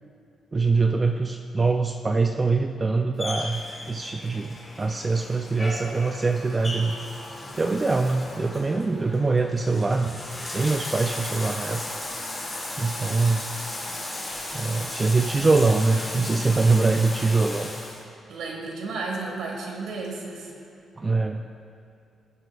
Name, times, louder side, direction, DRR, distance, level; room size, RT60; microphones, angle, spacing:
voice 1, 0.5-7.0 7.6-10.2 10.5-11.8 12.8-13.4 14.5-17.7 21.0-21.5, right 3 dB, 20° right, 5 dB, 0.3 m, -23 dB
Bathtub (filling or washing), 3.2-18.0, left 1 dB, 20° left, 2.1 m, -35 dB
voice 2, 18.3-20.5, right 3 dB, 90° right, 0 dB, 1.6 m, -33 dB
16.0 x 7.8 x 2.4 m, 2.6 s
cardioid pair, 140°, 0 cm